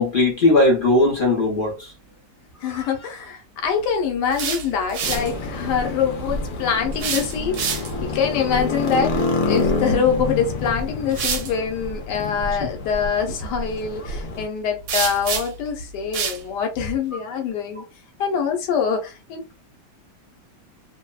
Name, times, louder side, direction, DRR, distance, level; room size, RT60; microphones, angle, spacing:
voice 1, 0.0-1.9 2.7-2.8, left 2 dB, 50° left, 0.6 m, -18 dB
voice 2, 2.6-17.8 18.2-19.6, left 6 dB, 85° left, 1.3 m, -24 dB
sound 1, 4.1-5.3 6.9-8.1 10.2-10.3 11.1-11.5 14.9-15.7 16.1-16.4, right 6 dB, 70° right, 1.2 m, -27 dB
sound 2, 5.0-14.4, left 3 dB, 70° left, 1.1 m, -28 dB
2.9 x 2.0 x 2.3 m
omnidirectional pair, 1.8 m